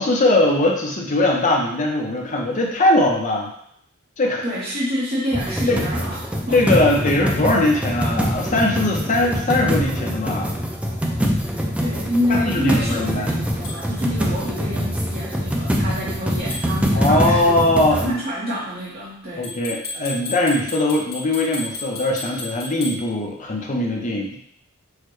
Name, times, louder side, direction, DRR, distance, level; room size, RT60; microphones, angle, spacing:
voice 1, 0.0-3.5 4.2-4.5 5.7-5.8 6.5-10.5 12.3-13.3 16.9-18.2 19.4-24.4, left 1 dB, 35° left, 0 dB, 0.7 m, -20 dB
voice 2, 4.4-6.2 6.5-6.6 11.0-11.1 11.5-19.4, equal, 45° right, -7 dB, 1.0 m, -27 dB
sound 1, 5.3-18.1, equal, 5° right, 0.4 m, -24 dB
sound 2, 13.6-13.8 16.5-16.7 19.4-23.0, left 2 dB, 80° left, 1.7 m, -33 dB
6.4 x 2.2 x 3.1 m, 0.69 s
head